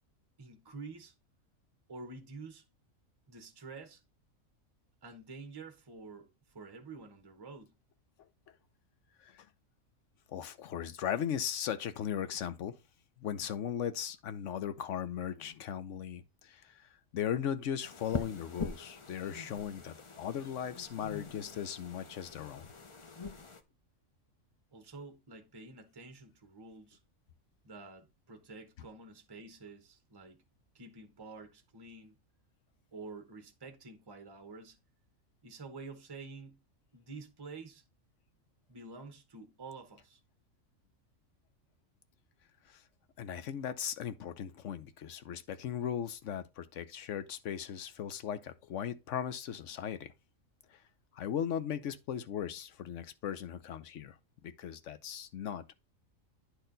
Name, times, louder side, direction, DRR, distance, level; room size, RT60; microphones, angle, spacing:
voice 1, 0.4-1.1 1.9-2.6 3.3-4.0 5.0-7.7 24.7-27.0 27.6-30.4 30.7-32.2 32.9-34.8 35.4-36.6 36.9-37.8 38.7-40.2, right 3 dB, 20° right, 1.0 m, -49 dB
voice 2, 10.3-12.7 13.2-22.7 42.7-42.8 43.2-50.1 50.7-50.8 51.1-54.2 54.4-55.7, left 9 dB, 65° left, 1.1 m, -38 dB
sound 1, 17.8-23.6, left 4 dB, 30° left, 0.6 m, -43 dB
10.0 x 4.2 x 3.9 m
omnidirectional pair, 1.4 m